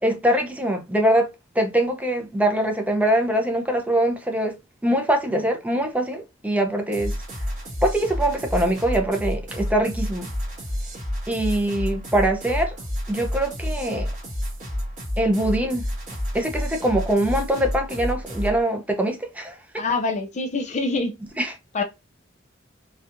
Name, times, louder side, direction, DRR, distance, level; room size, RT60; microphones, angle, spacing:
voice 1, 0.0-1.3 1.5-4.5 4.8-7.1 7.8-10.3 11.3-12.7 13.1-14.1 15.2-15.8 16.3-19.8 21.4-21.5, right 1 dB, 10° right, 0.6 m, -23 dB
sound 1, 6.9-18.6, equal, 40° right, 1.9 m, -30 dB
voice 2, 19.8-21.2 21.7-21.8, left 3 dB, 35° left, 0.4 m, -25 dB
4.2 x 2.4 x 2.5 m
head